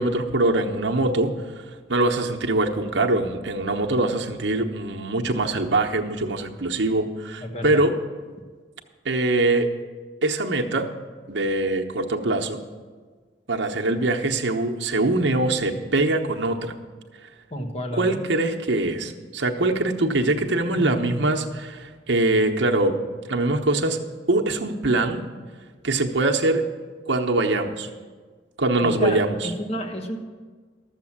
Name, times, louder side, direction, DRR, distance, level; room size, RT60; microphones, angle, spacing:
voice 1, 0.0-1.3 1.9-7.9 9.0-9.7 10.2-10.9 11.3-12.6 13.5-16.8 17.9-22.9 23.3-24.0 24.3-25.2 25.8-26.6 27.1-27.9 28.6-29.5, right 2 dB, 75° right, 3 dB, 1.0 m, -23 dB
voice 2, 7.4-7.8 17.5-18.2 20.7-21.0 28.8-30.2, left 1 dB, 35° left, 3 dB, 1.2 m, -31 dB
13.0 x 7.4 x 7.3 m, 1.5 s
head